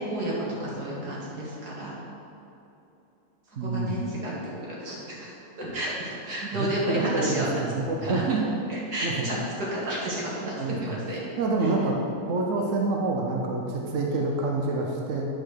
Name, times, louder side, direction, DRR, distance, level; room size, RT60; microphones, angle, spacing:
voice 1, 0.1-1.9 3.6-4.3 4.6-7.5 8.0-8.2 8.7-11.2 11.6-11.7 14.1-14.2, right 1 dB, 80° right, -6 dB, 2.5 m, -32 dB
voice 2, 3.6-4.1 6.5-8.6 9.0-9.3 10.4-11.0 11.4-12.0 12.3-15.3, right 3 dB, 55° right, 0 dB, 1.1 m, -27 dB
9.2 x 4.4 x 6.6 m, 2.8 s
omnidirectional pair, 1.7 m